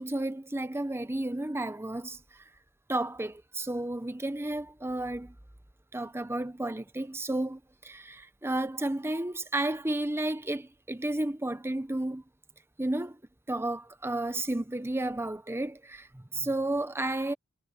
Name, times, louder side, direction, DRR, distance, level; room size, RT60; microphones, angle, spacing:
voice 1, 0.0-2.5 2.9-5.3 5.9-12.2 12.8-13.2 13.5-17.3, right 1 dB, 10° right, 0.8 m, -32 dB
head